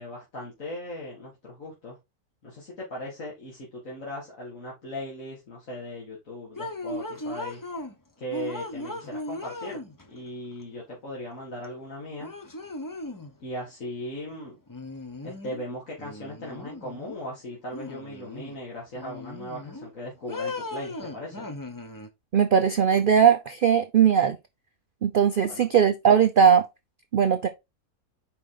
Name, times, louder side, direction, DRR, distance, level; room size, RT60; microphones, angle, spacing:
voice 1, 0.0-2.0 2.4-7.6 8.2-9.8 10.1-12.3 13.4-14.6 15.2-21.5 25.5-25.6, left 1 dB, 60° left, 2.4 m, -38 dB
sound 1, 6.6-7.9 8.3-10.2 11.6-11.7 12.2-13.3 14.7-15.7 16.0-17.2 17.7-18.6 19.0-19.9 20.3-22.1, left 2 dB, 20° left, 0.5 m, -37 dB
voice 2, 22.3-24.4 25.0-26.7 27.1-27.5, right 7 dB, 70° right, 0.5 m, -19 dB
5.6 x 4.9 x 3.7 m
omnidirectional pair, 1.6 m